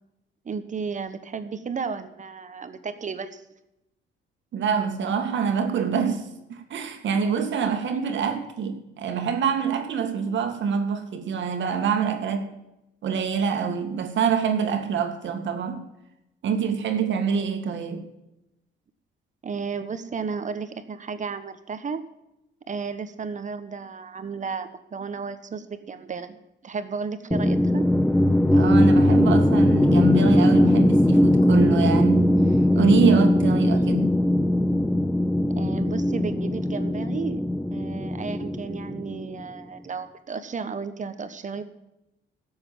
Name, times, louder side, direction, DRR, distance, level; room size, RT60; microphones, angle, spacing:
voice 1, 0.4-3.4 19.4-22.0 22.7-26.4 26.6-27.8 35.5-37.4 37.7-41.6, right 5 dB, 40° right, 1.3 m, -33 dB
voice 2, 4.5-12.5 13.0-15.9 16.4-18.1 28.5-32.3 32.7-34.2, right 6 dB, 70° right, 2.0 m, -25 dB
sound 1, 27.3-39.4, left 1 dB, 5° left, 0.5 m, -20 dB
12.5 x 7.9 x 7.5 m
cardioid pair, 90°, 20 cm